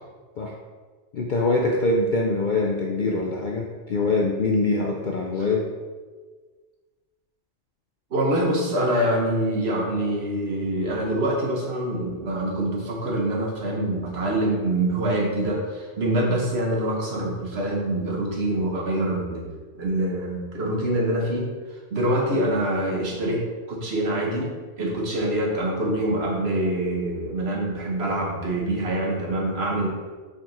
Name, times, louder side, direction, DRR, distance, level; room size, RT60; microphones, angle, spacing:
voice 1, 1.1-5.7, left 2 dB, 50° left, 1 dB, 0.6 m, -24 dB
voice 2, 8.1-19.4 19.7-21.5 21.9-29.9, right 1 dB, 60° right, -1 dB, 1.5 m, -25 dB
6.6 x 4.3 x 4.3 m, 1.4 s
omnidirectional pair, 1.2 m